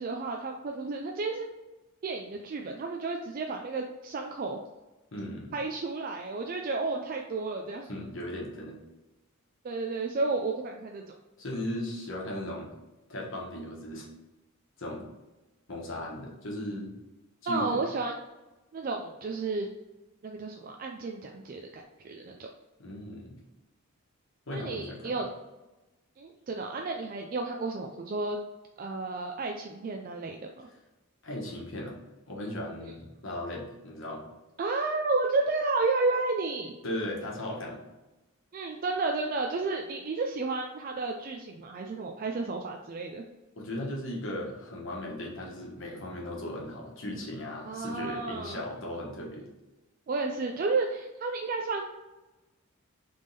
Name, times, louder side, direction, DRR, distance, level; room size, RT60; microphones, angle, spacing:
voice 1, 0.0-1.5 2.0-4.6 5.5-7.9 9.6-11.1 17.5-18.1 18.7-19.7 20.2-22.5 24.5-25.3 26.2-28.4 28.8-30.7 32.8-32.9 34.6-36.7 38.5-43.2 47.7-48.6 50.1-51.8, right 3 dB, 40° right, 2 dB, 0.3 m, -32 dB
voice 2, 5.1-5.5 7.9-8.8 11.4-12.7 13.1-14.1 14.8-15.1 15.7-16.9 17.4-17.8 22.8-23.4 24.5-25.2 31.2-32.0 32.3-34.2 36.8-37.8 43.6-49.5, left 1 dB, 55° left, -2 dB, 1.2 m, -37 dB
3.5 x 3.4 x 4.0 m, 1.1 s
head